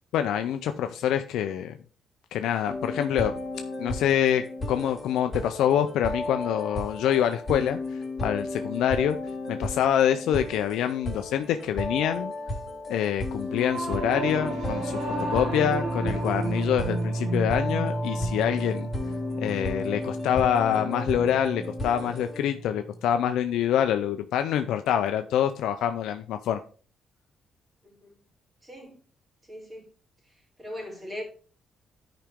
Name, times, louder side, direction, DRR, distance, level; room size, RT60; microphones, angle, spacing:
voice 1, 0.1-1.7 2.3-3.3 3.8-9.2 9.5-12.3 12.9-15.0 15.3-18.9 19.4-26.6, left 10 dB, 85° left, 0.5 m, -26 dB
sound 1, 2.7-22.4, left 2 dB, 15° left, 2.5 m, -34 dB
Singing / Musical instrument, 13.5-23.1, right 2 dB, 80° right, 2.9 m, -32 dB
voice 2, 27.8-28.2 28.6-29.0 29.5-29.9 30.6-31.2, left 1 dB, 15° right, 3.7 m, -39 dB
10.5 x 5.0 x 3.5 m
cardioid pair, 90°, 0 cm